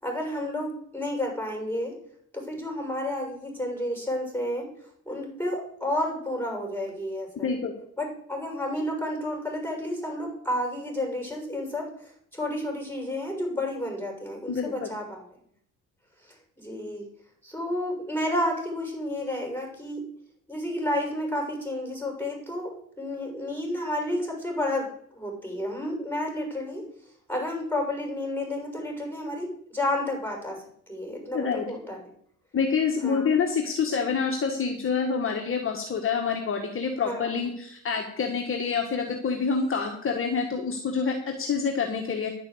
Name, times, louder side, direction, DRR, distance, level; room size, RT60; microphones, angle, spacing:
voice 1, 0.0-1.9 2.3-4.7 5.1-7.5 8.0-15.3 16.2-17.1 17.4-20.0 20.5-24.9 25.1-26.8 27.3-30.6 30.9-32.1 33.0-33.3 37.0-37.3, left 1 dB, 5° left, 0 dB, 6.8 m, -31 dB
voice 2, 14.5-14.9 31.3-31.7 32.5-42.3, left 5 dB, 45° left, 2 dB, 1.7 m, -27 dB
10.5 x 7.3 x 7.9 m, 0.65 s
cardioid pair, 90°, 30 cm